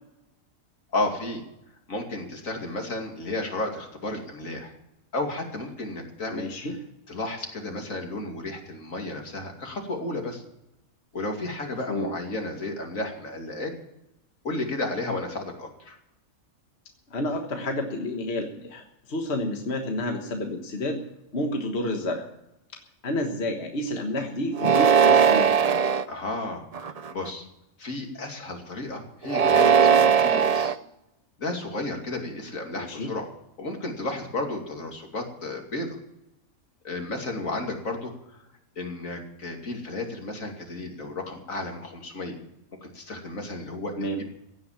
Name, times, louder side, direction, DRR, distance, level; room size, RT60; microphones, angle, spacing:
voice 1, 0.9-1.4 1.9-4.7 5.1-6.5 7.1-10.4 11.1-13.7 14.4-16.0 26.1-27.5 27.8-30.7 31.4-33.3 33.6-36.0 36.8-38.1 38.8-42.4 42.8-43.9, left 2 dB, 70° left, 2 dB, 3.0 m, -33 dB
voice 2, 6.3-6.8 11.9-12.1 17.1-21.0 21.3-22.2 23.0-25.5 32.7-33.1 44.0-44.2, left 1 dB, 50° left, 3 dB, 1.7 m, -30 dB
sound 1, 24.6-26.0 26.7-27.3 29.2-30.7, right 7 dB, 45° right, 0.5 m, -19 dB
16.5 x 9.7 x 7.2 m, 0.88 s
omnidirectional pair, 1.5 m